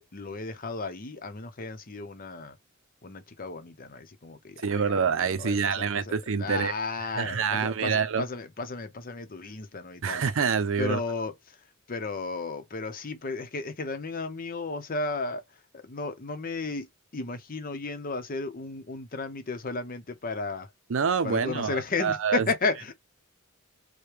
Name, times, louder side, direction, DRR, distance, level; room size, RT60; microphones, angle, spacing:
voice 1, 0.0-2.6 3.0-10.2 10.8-11.6 11.9-15.4 15.7-16.9 17.1-20.7 21.2-22.9, left 3 dB, 40° left, 0.7 m, -34 dB
voice 2, 4.6-6.7 7.2-8.3 10.0-11.0 20.9-22.5, right 6 dB, 65° right, 0.5 m, -26 dB
4.7 x 2.2 x 3.2 m
head